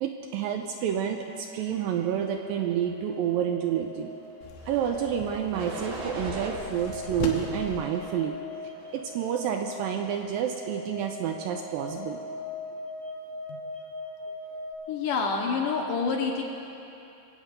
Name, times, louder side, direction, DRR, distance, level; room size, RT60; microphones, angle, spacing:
voice 1, 0.0-4.1 4.7-8.4 8.9-12.2, right 9 dB, 80° right, 4 dB, 2.1 m, -29 dB
sound 1, 1.4-14.7, left 2 dB, 35° right, 1.6 m, -41 dB
sound 2, 4.4-7.8, left 4 dB, 85° left, 3.3 m, -39 dB
sound 3, 4.6-5.0 5.5-6.6 7.1-8.2 8.7-9.2, right 2 dB, 55° right, 1.3 m, -39 dB
voice 2, 14.9-16.4, left 5 dB, 70° left, 0 dB, 2.2 m, -28 dB
24.0 x 8.4 x 5.2 m, 2.8 s
omnidirectional pair, 4.6 m